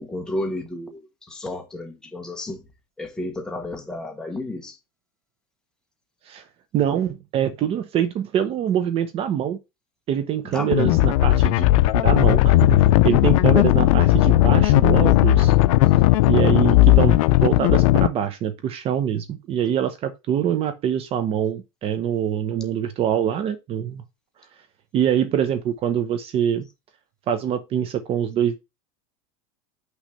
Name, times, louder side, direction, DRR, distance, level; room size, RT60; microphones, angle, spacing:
voice 1, 0.0-2.7 3.0-4.8 10.4-10.7, left 1 dB, 5° left, 1.0 m, -32 dB
voice 2, 6.7-9.6 10.1-15.5 16.3-24.0 24.9-26.7 27.3-28.6, right 9 dB, 35° right, 0.8 m, -24 dB
sound 1, 10.7-18.1, left 16 dB, 80° left, 0.5 m, -16 dB
6.1 x 3.2 x 5.4 m
supercardioid pair, 150°, 17 cm